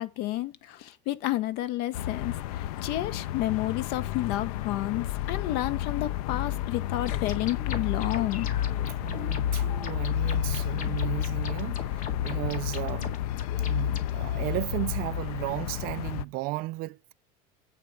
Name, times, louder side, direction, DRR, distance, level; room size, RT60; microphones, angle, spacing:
voice 1, 0.0-8.5, left 15 dB, 60° left, 1.0 m, -31 dB
sound 1, 1.9-16.3, left 11 dB, 85° left, 0.6 m, -31 dB
sound 2, 7.1-14.1, left 7 dB, 45° left, 1.9 m, -40 dB
voice 2, 9.0-13.2 13.6-17.1, right 20 dB, 55° right, 0.4 m, -34 dB
8.6 x 4.6 x 6.5 m
supercardioid pair, 135°, 19 cm